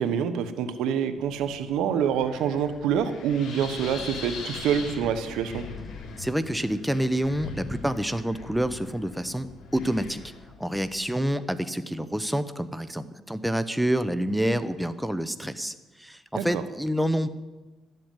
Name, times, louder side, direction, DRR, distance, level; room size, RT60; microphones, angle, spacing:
voice 1, 0.0-5.6 16.3-16.6, right 8 dB, 90° right, 11 dB, 1.0 m, -26 dB
Wind, 1.2-11.3, left 4 dB, 70° left, 3.3 m, -41 dB
voice 2, 6.2-9.5 9.7-10.2 10.6-17.4, right 1 dB, 5° right, 12 dB, 0.8 m, -28 dB
12.0 x 7.9 x 9.0 m, 1.2 s
cardioid pair, 90°, 0 cm